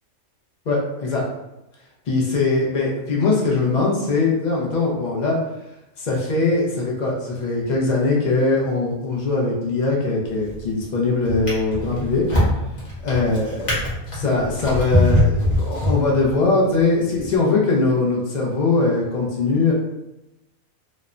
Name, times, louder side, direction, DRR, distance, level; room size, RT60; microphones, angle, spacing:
voice 1, 0.7-1.3 2.1-5.4 6.0-12.3 13.0-13.9 14.1-19.7, left 3 dB, 65° left, -3 dB, 0.4 m, -21 dB
Drawer open or close, 10.3-10.7 11.3-16.4 17.1-17.3, left 1 dB, 35° left, 0.9 m, -22 dB
3.0 x 2.1 x 2.4 m, 0.94 s
omnidirectional pair, 1.5 m